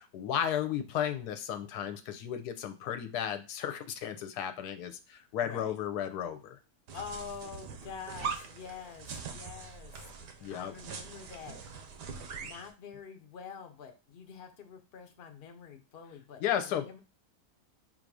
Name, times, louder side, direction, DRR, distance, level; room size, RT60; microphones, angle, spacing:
voice 1, 0.0-6.6 10.4-10.7 16.4-17.0, left 9 dB, 80° left, 8 dB, 1.1 m, -34 dB
voice 2, 5.4-5.7 6.9-9.9 10.5-11.6 12.4-17.0, left 6 dB, 50° left, 5 dB, 0.7 m, -46 dB
sound 1, 6.9-12.7, right 6 dB, 85° right, 1.4 m, -42 dB
3.9 x 2.6 x 4.7 m, 0.31 s
omnidirectional pair, 1.7 m